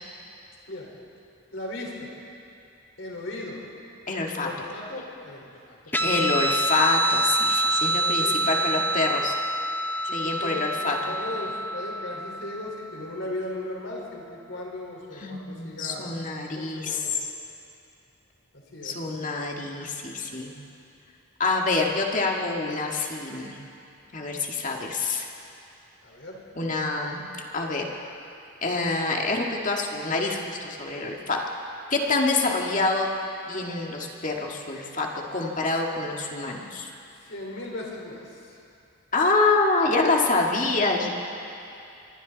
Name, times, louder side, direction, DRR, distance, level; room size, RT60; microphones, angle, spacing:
voice 1, 1.5-2.1 3.0-3.6 4.3-6.3 8.2-8.4 10.1-16.1 16.5-17.2 18.7-19.0 26.0-26.4 37.2-38.5, left 2 dB, 65° left, -2 dB, 4.5 m, -37 dB
voice 2, 4.1-4.5 6.0-9.3 10.1-11.0 15.2-17.0 18.8-20.5 21.4-23.6 24.1-25.3 26.6-27.2 27.5-27.9 28.6-31.4 31.9-33.1 33.5-36.9 39.1-41.1, left 3 dB, 40° left, 0 dB, 2.0 m, -26 dB
Guitar, 5.9-12.8, right 1 dB, 10° left, 0.7 m, -26 dB
27.0 x 23.5 x 4.1 m, 2.6 s
head